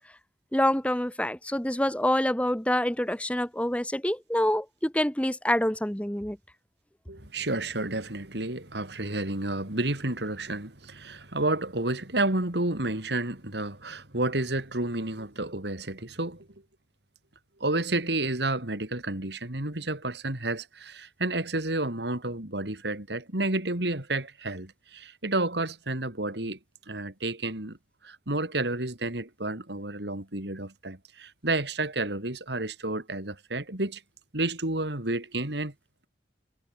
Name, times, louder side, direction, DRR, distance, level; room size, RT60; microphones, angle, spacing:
voice 1, 0.5-6.4, left 1 dB, 5° left, 1.0 m, -26 dB
voice 2, 7.1-16.5 17.6-26.6 26.9-27.8 28.0-34.0 34.3-35.7, right 2 dB, 70° right, 3.1 m, -30 dB
head